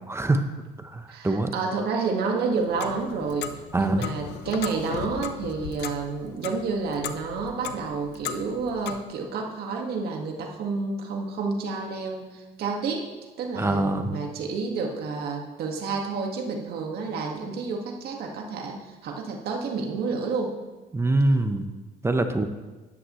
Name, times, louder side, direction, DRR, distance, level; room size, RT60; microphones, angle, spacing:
voice 1, 0.1-0.4 0.9-1.5 3.7-4.1 13.6-14.1 20.9-21.6 22.0-22.4, right 2 dB, 15° right, 7 dB, 0.9 m, -23 dB
voice 2, 1.1-13.1 13.4-20.6, right 4 dB, 70° right, 1 dB, 1.8 m, -30 dB
Clock, 2.5-9.0, left 9 dB, 85° left, 0.7 m, -37 dB
13.0 x 11.0 x 3.2 m, 1.2 s
cardioid pair, 110°, 17 cm